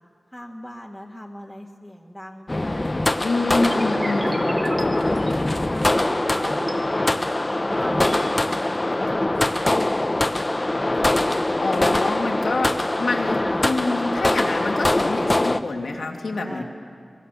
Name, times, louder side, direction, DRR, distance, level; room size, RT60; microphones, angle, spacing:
voice 1, 0.3-3.8 5.0-6.0 6.4-7.2 7.5-10.2 13.3-13.7 16.2-16.6, equal, 5° left, -3 dB, 1.7 m, -40 dB
sound 1, 2.5-15.6, left 1 dB, 30° left, 0.9 m, -23 dB
voice 2, 3.2-4.5 11.6-16.6, left 3 dB, 85° left, 1 dB, 2.5 m, -26 dB
sound 2, 3.7-6.7 7.2-8.2, right 1 dB, 40° right, 2.9 m, -34 dB
23.5 x 21.0 x 6.8 m, 2.2 s
cardioid pair, 45°, 0 cm